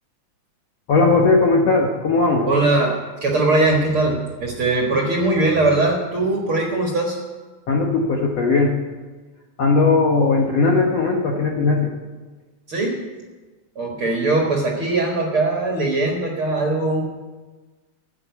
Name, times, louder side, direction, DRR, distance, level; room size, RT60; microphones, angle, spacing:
voice 1, 0.9-2.5 7.7-8.7 9.6-11.9, left 3 dB, 60° left, 0 dB, 1.8 m, -18 dB
voice 2, 2.5-7.2 12.7-13.0 13.8-17.1, right 2 dB, 50° right, 0 dB, 1.8 m, -20 dB
14.0 x 7.8 x 9.3 m, 1.3 s
omnidirectional pair, 4.3 m